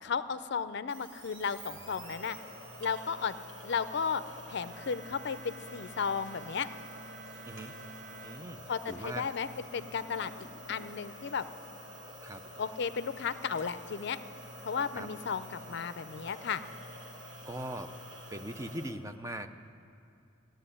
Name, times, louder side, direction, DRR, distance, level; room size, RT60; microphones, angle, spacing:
voice 1, 0.0-2.4 2.8-3.4 3.6-4.2 4.5-6.7 8.7-10.3 10.7-11.5 12.6-14.2 14.6-16.6, left 6 dB, 60° left, 13 dB, 0.5 m, -34 dB
sound 1, 0.9-18.9, equal, 75° right, 1.7 m, -48 dB
Bowed string instrument, 4.7-9.1, right 5 dB, 45° right, 0.8 m, -52 dB
voice 2, 7.5-7.8 8.2-8.6 8.9-9.3 12.2-12.4 14.9-15.1 17.4-17.9 18.3-19.5, right 1 dB, 15° right, 8 dB, 0.5 m, -40 dB
15.0 x 7.7 x 9.8 m, 2.6 s
head